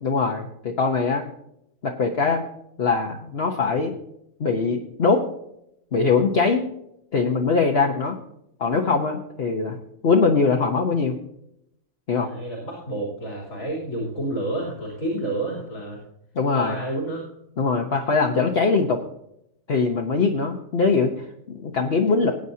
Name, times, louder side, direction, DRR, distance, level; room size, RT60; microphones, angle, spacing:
voice 1, 0.0-1.2 1.8-2.4 2.8-3.9 4.4-5.3 5.9-6.7 7.1-8.2 8.6-9.8 10.0-11.2 12.1-12.3 16.3-16.8 17.6-19.0 19.7-22.3, left 4 dB, 50° left, 1 dB, 1.2 m, -22 dB
voice 2, 12.1-16.0 16.5-17.2 19.9-20.2, right 1 dB, 90° left, -4 dB, 3.8 m, -30 dB
20.0 x 9.0 x 2.8 m, 0.78 s
omnidirectional pair, 1.4 m